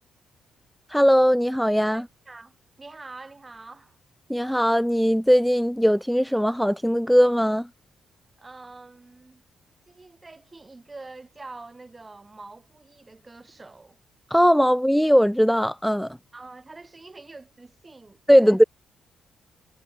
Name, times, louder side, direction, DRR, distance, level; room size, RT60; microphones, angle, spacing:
voice 1, 0.9-2.0 4.3-7.7 14.3-16.2 18.3-18.6, equal, ahead, 0.4 m, -19 dB
voice 2, 1.9-4.0 8.4-9.4 9.9-14.0 16.3-18.6, right 3 dB, 30° right, 6.1 m, -45 dB
hypercardioid pair, 50°, 0 cm